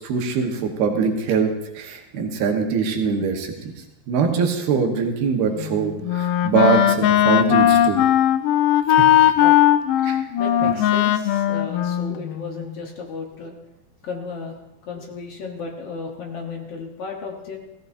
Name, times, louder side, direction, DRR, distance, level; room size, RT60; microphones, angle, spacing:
voice 1, 0.0-1.5 1.8-3.7 4.1-8.0 8.9-9.1 10.0-10.2 10.6-10.7, right 5 dB, 80° right, 2 dB, 3.3 m, -22 dB
Wind instrument woodwind instrument, 5.6-12.7, left 11 dB, 90° left, 1.9 m, -18 dB
voice 2, 10.4-13.5 14.0-14.6 14.9-17.6, left 4 dB, 70° left, 1 dB, 1.4 m, -34 dB
17.0 x 15.5 x 2.7 m, 0.96 s
omnidirectional pair, 4.4 m